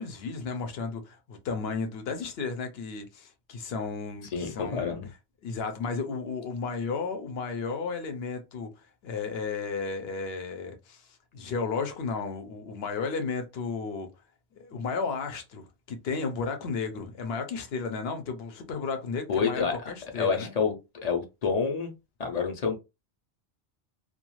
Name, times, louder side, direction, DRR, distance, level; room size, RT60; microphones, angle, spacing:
voice 1, 0.0-5.0 5.4-8.7 9.0-14.1 14.5-20.5, left 4 dB, 70° left, 0.9 m, -33 dB
voice 2, 4.3-5.1 19.3-19.8 20.2-20.7 21.0-21.9 22.2-22.8, left 5 dB, 45° left, 0.6 m, -28 dB
2.3 x 2.3 x 3.0 m
omnidirectional pair, 1.1 m